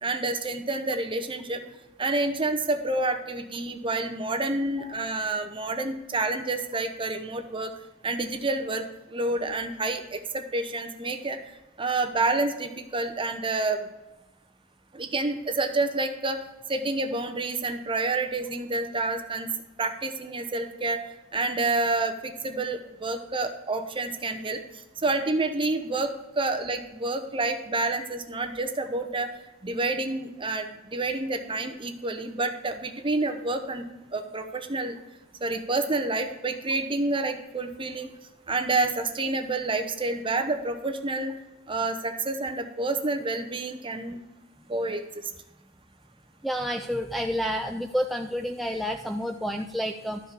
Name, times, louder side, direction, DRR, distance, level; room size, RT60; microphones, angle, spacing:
voice 1, 0.0-1.6 2.0-7.7 8.0-11.4 11.8-13.9 14.9-16.4 16.7-19.5 19.8-21.0 21.3-24.6 25.0-29.3 29.6-35.0 35.4-38.1 38.5-41.3 41.7-44.2 44.7-45.3, right 2 dB, 25° right, 6 dB, 0.8 m, -28 dB
voice 2, 46.4-50.2, equal, ahead, 2 dB, 0.3 m, -29 dB
12.5 x 5.1 x 5.2 m, 1.0 s
head